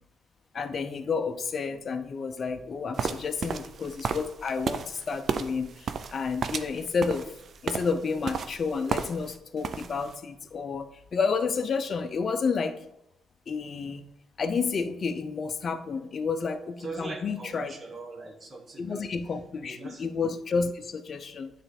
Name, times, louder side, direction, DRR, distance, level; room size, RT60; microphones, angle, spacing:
voice 1, 0.5-7.3 7.6-12.7 13.5-14.1 14.4-17.7 18.8-21.5, left 5 dB, 45° left, 9 dB, 0.6 m, -30 dB
sound 1, 3.0-9.4 9.6-10.1, right 6 dB, 50° right, 0.5 m, -33 dB
voice 2, 16.8-19.1 19.6-20.0, right 3 dB, 35° right, 2 dB, 1.2 m, -41 dB
9.3 x 3.3 x 4.3 m, 0.83 s
cardioid pair, 90°, 0 cm